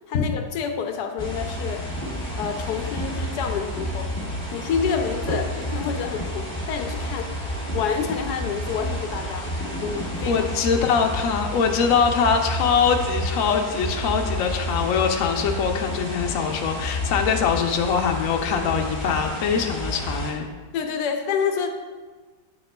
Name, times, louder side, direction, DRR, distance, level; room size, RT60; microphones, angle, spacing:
voice 1, 0.1-1.8 2.4-4.1 4.5-7.3 7.7-9.5 9.8-10.5 20.7-21.7, left 6 dB, 85° left, 5 dB, 1.1 m, -28 dB
sound 1, 1.2-20.3, equal, 15° left, 1.8 m, -30 dB
voice 2, 10.3-20.5, left 6 dB, 65° left, 3 dB, 1.0 m, -23 dB
8.5 x 6.4 x 2.2 m, 1.4 s
omnidirectional pair, 1.7 m